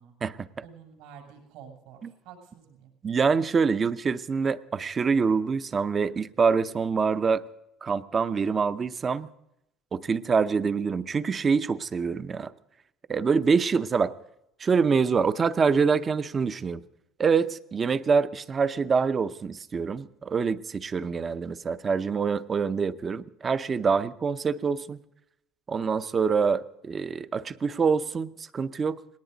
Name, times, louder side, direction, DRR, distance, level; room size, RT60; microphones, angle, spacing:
voice 1, 0.6-2.9, right 7 dB, 80° right, 2 dB, 6.4 m, -49 dB
voice 2, 3.0-7.4 7.8-9.3 9.9-12.5 13.1-14.1 14.6-16.8 17.2-25.0 25.7-29.0, right 5 dB, 25° right, 13 dB, 0.6 m, -25 dB
20.0 x 18.0 x 4.0 m, 0.84 s
cardioid pair, 140°, 0 cm